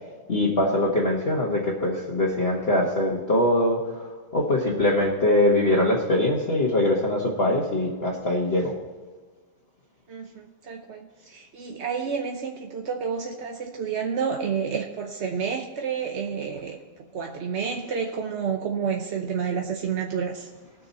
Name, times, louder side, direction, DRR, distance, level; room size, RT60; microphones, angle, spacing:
voice 1, 0.3-8.7, left 1 dB, 35° left, -3 dB, 1.7 m, -23 dB
voice 2, 10.1-16.8 17.1-20.5, right 6 dB, 50° right, 2 dB, 0.9 m, -30 dB
19.5 x 6.6 x 4.2 m, 1.4 s
omnidirectional pair, 2.0 m